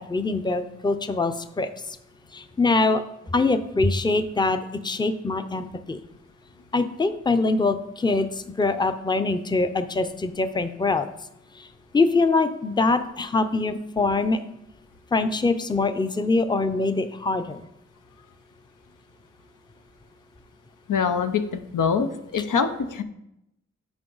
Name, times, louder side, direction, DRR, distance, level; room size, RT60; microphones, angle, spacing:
voice 1, 0.0-2.0 2.3-3.0 3.3-6.0 6.7-11.1 11.6-11.7 11.9-14.4 15.1-17.6, left 3 dB, 15° left, 9 dB, 0.5 m, -24 dB
voice 2, 20.9-21.4 21.7-23.0, left 6 dB, 85° left, 8 dB, 0.7 m, -24 dB
9.6 x 5.6 x 3.9 m, 0.82 s
wide cardioid pair, 70°, 31 cm